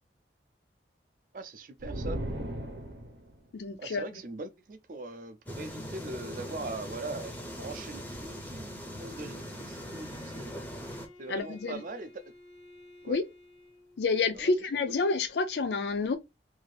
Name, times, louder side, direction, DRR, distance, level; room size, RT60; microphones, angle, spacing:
voice 1, 1.3-2.2 3.8-8.7 9.0-10.5 11.2-12.2 13.0-13.2 14.3-14.7, right 2 dB, 50° right, 0.4 m, -41 dB
sound 1, 1.8-3.4, right 1 dB, 90° right, 0.7 m, -36 dB
voice 2, 3.5-4.0 11.3-11.8 13.1-13.2 14.0-16.2, left 4 dB, 75° left, 0.4 m, -29 dB
sound 2, 5.5-11.1, equal, 10° left, 0.5 m, -41 dB
Bowed string instrument, 9.2-14.1, left 2 dB, 90° left, 1.3 m, -54 dB
2.7 x 2.4 x 3.2 m
head